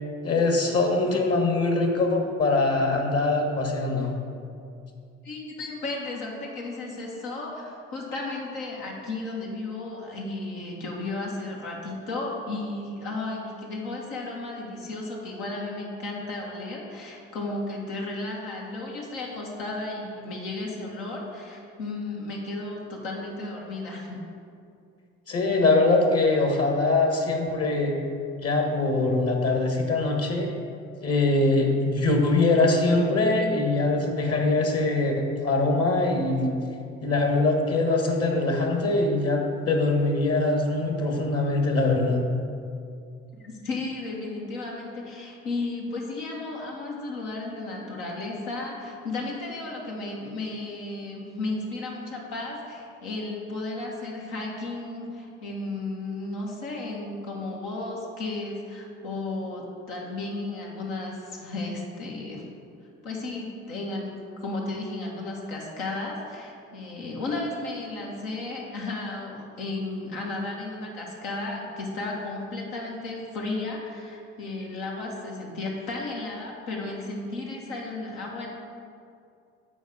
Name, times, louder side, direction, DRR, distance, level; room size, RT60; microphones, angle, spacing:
voice 1, 0.2-4.1 25.3-27.9 28.4-30.5 31.0-36.5 37.0-42.2, left 2 dB, 40° left, 2 dB, 1.7 m, -23 dB
voice 2, 5.2-24.2 43.4-62.4 63.0-78.5, left 2 dB, 70° left, -2 dB, 1.7 m, -34 dB
8.0 x 4.7 x 6.4 m, 2.4 s
hypercardioid pair, 50°, 36 cm